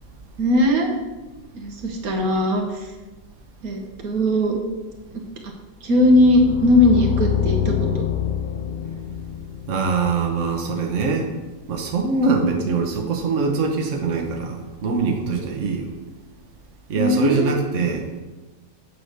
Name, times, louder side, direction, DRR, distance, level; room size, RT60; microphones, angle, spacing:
voice 1, 0.4-0.9 1.5-2.9 3.6-4.6 5.1-5.2 5.8-8.0 16.9-17.6, left 1 dB, 80° right, 2 dB, 1.7 m, -19 dB
sound 1, 5.9-10.9, left 10 dB, 55° left, 0.5 m, -26 dB
voice 2, 9.7-11.3 11.7-15.9 16.9-18.0, right 4 dB, 60° right, 1 dB, 1.4 m, -23 dB
8.0 x 4.7 x 6.5 m, 1.2 s
omnidirectional pair, 1.5 m